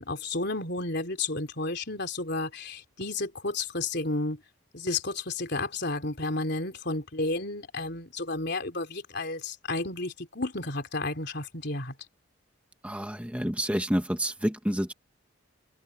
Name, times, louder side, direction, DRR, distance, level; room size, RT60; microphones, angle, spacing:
voice 1, 0.0-4.4 4.7-11.9, left 2 dB, 55° left, 3.8 m, -32 dB
voice 2, 12.8-14.9, equal, 5° right, 1.7 m, -28 dB
head